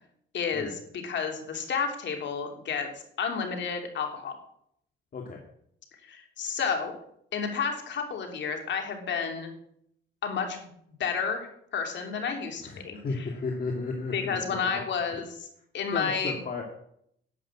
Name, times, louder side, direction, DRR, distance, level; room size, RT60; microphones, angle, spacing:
voice 1, 0.3-2.9 3.2-4.4 6.0-6.9 7.3-9.5 10.2-10.7 11.0-13.3 14.1-15.3 15.7-16.4, left 6 dB, 65° left, 4 dB, 3.1 m, -31 dB
voice 2, 12.6-14.8 15.1-15.2 15.9-16.6, left 4 dB, 45° left, 1 dB, 2.3 m, -34 dB
11.0 x 8.0 x 8.7 m, 0.71 s
cardioid pair, 90°, 20 cm